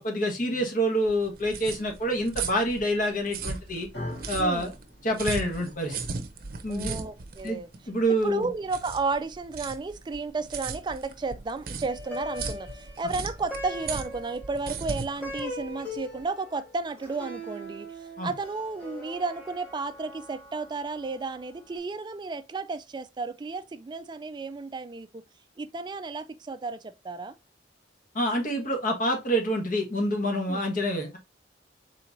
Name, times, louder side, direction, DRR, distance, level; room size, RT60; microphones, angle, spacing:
voice 1, 0.0-3.9 4.3-4.7 5.0-6.0 6.6-7.0 7.4-7.6 7.9-8.5 18.2-18.3 28.1-31.2, equal, 50° left, 1.4 m, -27 dB
sound 1, 1.1-16.2, right 4 dB, 55° right, 0.7 m, -37 dB
sound 2, 3.9-12.2, left 1 dB, 85° left, 2.0 m, -47 dB
voice 2, 4.4-4.7 6.7-7.7 8.2-25.2 25.6-27.3 30.5-30.7, right 3 dB, 25° right, 0.3 m, -33 dB
Plucked string instrument, 11.9-21.3, left 1 dB, 10° left, 2.2 m, -41 dB
4.4 x 3.8 x 2.6 m
head